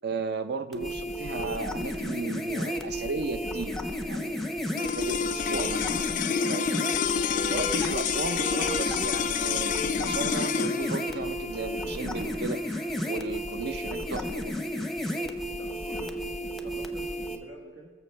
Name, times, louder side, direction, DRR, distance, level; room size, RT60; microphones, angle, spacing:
voice 1, 0.0-3.8 4.1-4.5 4.8-6.9 7.5-12.6 13.1-14.5, right 3 dB, 60° right, 11 dB, 0.6 m, -35 dB
sound 1, 0.7-17.4, equal, ahead, 0.7 m, -33 dB
sound 2, 4.7-15.2, left 7 dB, 45° left, 0.4 m, -30 dB
voice 2, 15.2-16.3 16.6-17.9, right 2 dB, 80° right, 0 dB, 1.4 m, -48 dB
19.5 x 7.0 x 3.3 m, 1.5 s
head